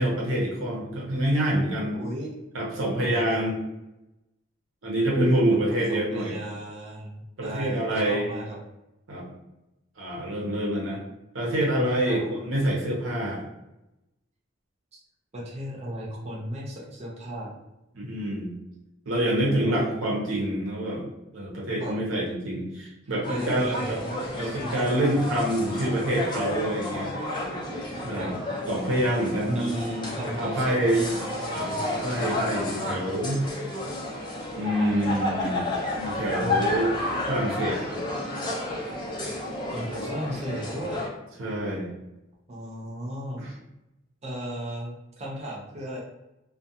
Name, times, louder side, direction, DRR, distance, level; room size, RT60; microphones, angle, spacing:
voice 1, 0.0-2.0 2.5-3.5 4.8-6.4 7.4-8.3 9.1-9.3 10.0-11.0 11.3-13.4 17.9-18.6 19.1-24.0 24.3-27.2 28.0-28.4 28.7-29.6 30.4-31.0 31.5-33.5 34.5-35.7 35.9-37.0 37.3-38.0 41.4-41.9 43.4-43.5, right 1 dB, 85° right, -3 dB, 0.8 m, -26 dB
voice 2, 1.9-2.3 3.0-3.4 5.7-8.6 12.1-12.3 14.9-15.0 15.3-17.5 19.3-20.0 21.8-21.9 23.1-25.3 28.2-28.3 29.5-31.9 36.4-36.7 39.7-41.0 42.5-43.4 44.2-46.0, right 1 dB, 35° right, -4 dB, 0.5 m, -35 dB
sound 1, 23.2-41.1, left 2 dB, 25° left, 0.6 m, -31 dB
2.4 x 2.2 x 2.6 m, 0.94 s
head